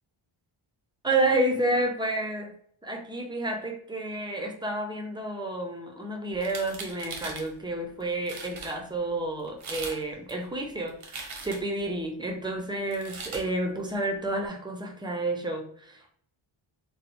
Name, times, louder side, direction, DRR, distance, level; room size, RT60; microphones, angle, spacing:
voice 1, 1.0-2.5 2.8-16.1, right 2 dB, 10° right, 2 dB, 0.3 m, -30 dB
sound 1, 6.3-7.5 8.0-8.1 8.3-8.7 9.5-10.0 10.3-11.8 12.9-13.4, right 4 dB, 85° right, 0.8 m, -39 dB
4.0 x 2.0 x 2.8 m, 0.64 s
wide cardioid pair, 160°, 49 cm